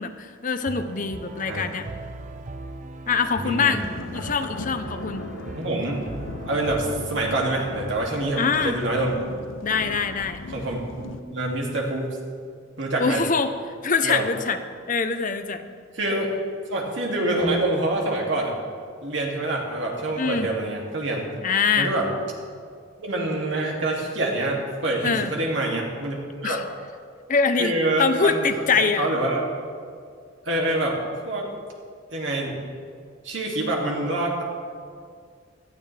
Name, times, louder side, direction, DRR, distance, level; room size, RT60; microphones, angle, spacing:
voice 1, 0.0-1.9 3.1-3.8 4.1-5.2 8.4-8.8 9.6-10.4 13.0-13.5 13.8-14.6 14.9-15.6 20.2-20.5 21.4-21.9 25.0-25.3 26.4-26.6 27.3-27.7 28.0-29.1, left 5 dB, 40° left, 8 dB, 0.7 m, -23 dB
sound 1, 0.7-7.9, right 2 dB, 40° right, 0.5 m, -38 dB
voice 2, 3.4-4.4 5.5-6.0 6.5-9.2 10.5-12.2 12.8-13.2 14.0-14.2 15.9-16.3 16.7-18.6 19.0-21.3 21.7-22.1 23.0-26.6 27.6-29.5 30.4-31.0 31.3-31.5 32.1-32.6 33.2-34.4, right 2 dB, 65° right, -1 dB, 2.4 m, -26 dB
sound 2, 3.8-11.2, left 3 dB, 75° left, 0.5 m, -38 dB
17.5 x 12.5 x 3.4 m, 2.1 s
head